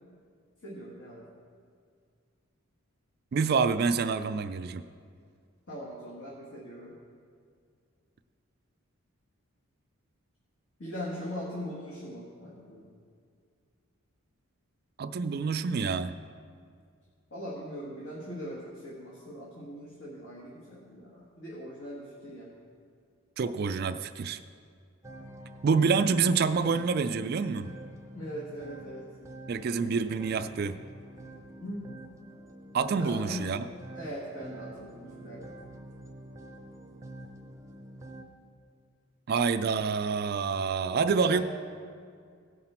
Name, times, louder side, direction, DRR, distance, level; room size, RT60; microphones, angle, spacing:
voice 1, 0.6-1.3 5.7-7.0 10.8-12.9 17.3-22.5 28.1-29.1 31.6-31.9 33.0-33.5 33.9-35.5 41.2-41.4, equal, 60° left, -6 dB, 1.6 m, -40 dB
voice 2, 3.3-4.8 15.0-16.2 23.4-24.4 25.6-27.7 29.5-30.8 32.7-33.7 39.3-41.4, right 5 dB, 45° right, 11 dB, 0.3 m, -27 dB
sound 1, 25.0-38.2, right 1 dB, 15° right, 0.6 m, -47 dB
16.5 x 5.8 x 4.4 m, 2.2 s
head